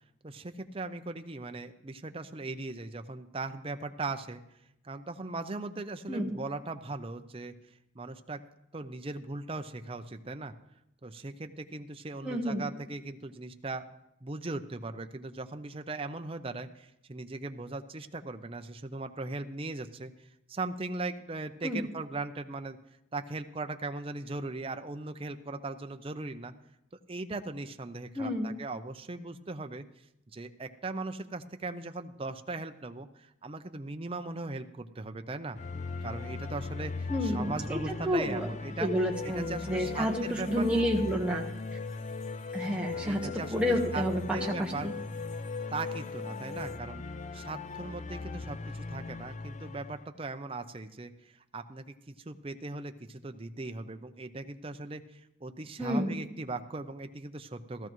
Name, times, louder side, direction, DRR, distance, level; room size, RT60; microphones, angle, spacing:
voice 1, 0.2-4.4 4.8-7.5 7.9-8.4 8.7-10.5 11.0-13.9 14.2-22.8 23.1-26.5 27.1-29.8 30.3-35.6 36.0-38.9 39.2-40.8 42.9-44.0 44.3-44.9 45.7-47.0 47.3-57.9, right 3 dB, 30° right, 8 dB, 0.5 m, -39 dB
voice 2, 12.2-12.6 21.6-21.9 28.1-28.5 37.1-37.8 38.0-38.5 38.8-41.4 42.5-44.9 55.8-56.2, equal, 5° right, -3 dB, 1.2 m, -30 dB
sound 1, 35.5-50.1, left 3 dB, 35° left, 0.4 m, -40 dB
sound 2, 39.1-46.8, left 6 dB, 80° left, 0.6 m, -42 dB
16.0 x 13.5 x 3.1 m, 0.84 s
head